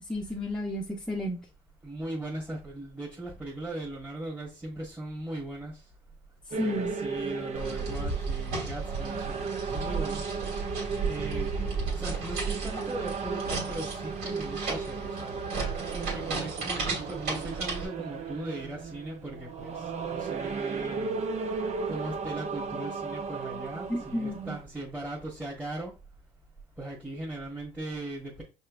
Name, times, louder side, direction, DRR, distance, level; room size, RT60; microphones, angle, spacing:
voice 1, 0.1-1.5 6.6-7.0 23.9-24.6, left 1 dB, 5° left, 0.8 m, -32 dB
voice 2, 1.8-5.8 6.5-10.2 11.1-11.5 11.9-15.4 15.9-21.2 21.9-25.9 26.8-28.4, right 1 dB, 10° right, 1.4 m, -39 dB
sound 1, 6.5-24.6, right 5 dB, 50° right, 0.7 m, -35 dB
sound 2, 7.5-17.9, right 4 dB, 80° right, 2.4 m, -34 dB
5.5 x 3.1 x 2.5 m
supercardioid pair, 85°, 15 cm